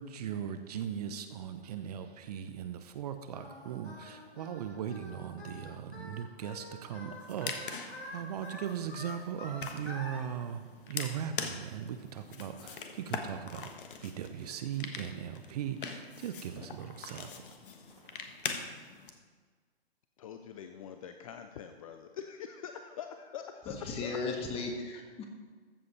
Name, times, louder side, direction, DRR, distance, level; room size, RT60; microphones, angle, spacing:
voice 1, 0.0-13.7 14.0-17.5, right 9 dB, 40° right, 9 dB, 0.7 m, -39 dB
Singing, 3.3-10.2, left 2 dB, 80° left, 2.8 m, -46 dB
sound 1, 7.1-19.1, left 5 dB, 55° left, 1.3 m, -43 dB
voice 2, 20.2-24.2, left 8 dB, 35° left, 7 dB, 0.5 m, -44 dB
voice 3, 23.7-25.2, left 3 dB, 20° left, 3 dB, 1.5 m, -36 dB
14.5 x 7.6 x 4.3 m, 1.5 s
figure-of-eight pair, 125°, 32 cm